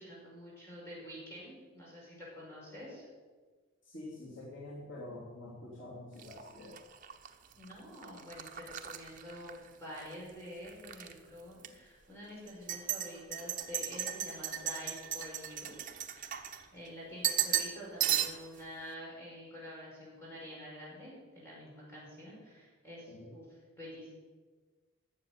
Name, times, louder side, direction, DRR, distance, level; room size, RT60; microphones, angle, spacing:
voice 1, 0.0-3.1 7.6-15.8 16.3-24.1, equal, 15° left, -6 dB, 5.6 m, -48 dB
voice 2, 3.8-6.8 23.1-23.3, left 2 dB, 75° left, -6 dB, 3.3 m, -47 dB
sound 1, 6.2-10.1 10.5-11.1 11.6-11.7 12.5-16.9 17.2-17.7 18.0-18.6, right 11 dB, 40° right, 0.9 m, -36 dB
13.0 x 7.8 x 9.7 m, 1.4 s
head